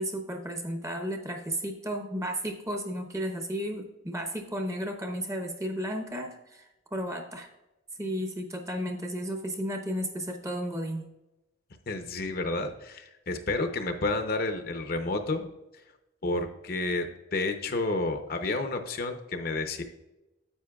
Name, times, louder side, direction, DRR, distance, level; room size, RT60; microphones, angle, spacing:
voice 1, 0.0-7.5 8.0-11.1, equal, 15° right, 4 dB, 0.8 m, -33 dB
voice 2, 11.9-15.5 16.2-17.1 17.3-19.8, left 2 dB, 50° left, 6 dB, 0.7 m, -30 dB
9.8 x 7.9 x 2.3 m, 0.97 s
head